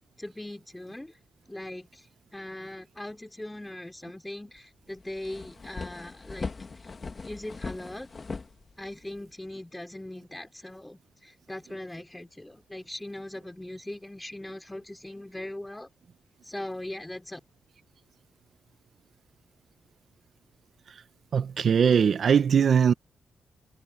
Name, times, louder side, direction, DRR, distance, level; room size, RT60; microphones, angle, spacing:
voice 1, 0.2-1.2 1.5-2.1 2.3-6.5 6.8-6.9 7.2-8.1 8.8-15.9 16.4-17.4, left 1 dB, 10° left, 3.9 m, -40 dB
sound 1, 4.6-4.7 5.0-9.2, left 4 dB, 40° left, 2.5 m, -39 dB
voice 2, 21.3-22.9, right 7 dB, 60° right, 1.2 m, -21 dB
cardioid pair, 65°, 0 cm